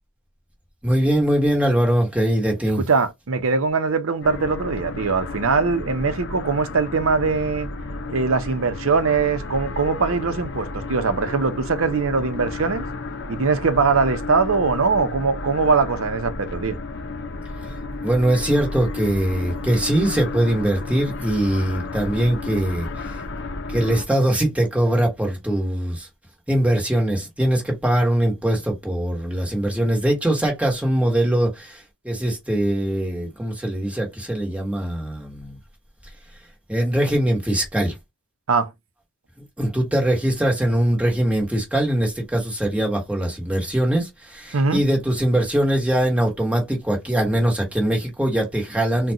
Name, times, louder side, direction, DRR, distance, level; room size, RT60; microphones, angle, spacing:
voice 1, 0.8-2.8 18.0-23.2 23.7-26.1 26.5-35.6 36.7-37.9 39.6-49.1, right 1 dB, 5° right, 1.2 m, -22 dB
voice 2, 2.9-7.7 8.1-12.8 13.3-16.8 38.5-38.7 44.5-44.8, right 4 dB, 70° right, 0.7 m, -21 dB
sound 1, 4.2-24.1, left 3 dB, 55° left, 0.6 m, -32 dB
3.9 x 2.2 x 2.8 m
head